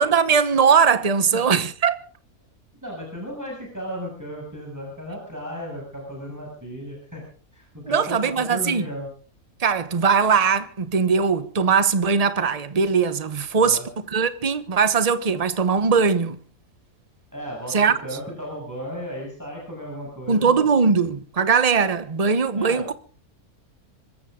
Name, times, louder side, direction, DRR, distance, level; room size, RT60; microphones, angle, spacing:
voice 1, 0.0-2.0 7.9-8.8 9.6-13.8 14.1-16.4 17.7-17.9 20.3-22.9, right 5 dB, 30° right, 1.0 m, -20 dB
voice 2, 2.8-7.2 7.5-9.1 13.5-13.9 17.3-20.6 22.5-22.9, equal, 10° right, 7.0 m, -35 dB
25.0 x 14.5 x 3.8 m
omnidirectional pair, 1.5 m